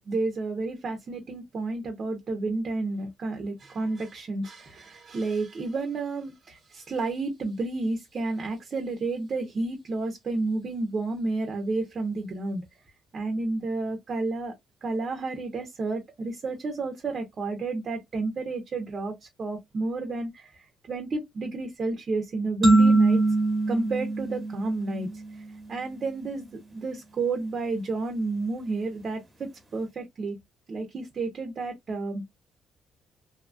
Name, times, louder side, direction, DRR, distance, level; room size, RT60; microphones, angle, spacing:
voice 1, 0.0-12.6 13.1-14.5 14.8-23.2 23.7-25.1 25.7-30.4 30.7-32.2, right 3 dB, 45° right, 0.8 m, -31 dB
sound 1, 22.6-25.3, right 2 dB, 25° right, 1.1 m, -22 dB
2.8 x 2.3 x 2.5 m
cardioid pair, 90°, 0 cm